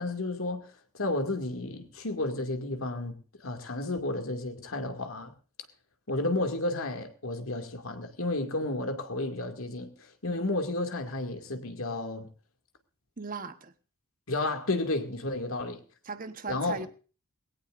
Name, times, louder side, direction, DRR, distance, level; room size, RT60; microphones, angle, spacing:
voice 1, 0.0-5.3 6.1-12.3 14.3-15.8 16.5-16.9, left 2 dB, 75° left, 2.3 m, -32 dB
voice 2, 13.2-13.7 16.0-16.9, right 4 dB, 40° right, 1.1 m, -38 dB
20.5 x 17.5 x 2.6 m
head